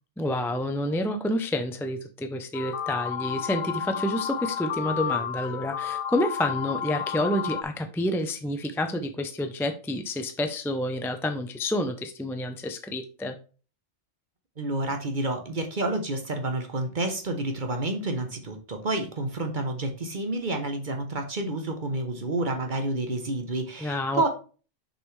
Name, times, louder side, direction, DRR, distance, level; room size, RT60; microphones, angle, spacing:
voice 1, 0.2-13.4 23.8-24.3, left 1 dB, 5° left, 6 dB, 0.3 m, -29 dB
sound 1, 2.5-7.6, left 8 dB, 60° left, 0.6 m, -31 dB
voice 2, 14.6-24.3, right 2 dB, 45° right, 5 dB, 1.1 m, -29 dB
6.5 x 5.4 x 3.2 m, 0.37 s
omnidirectional pair, 1.2 m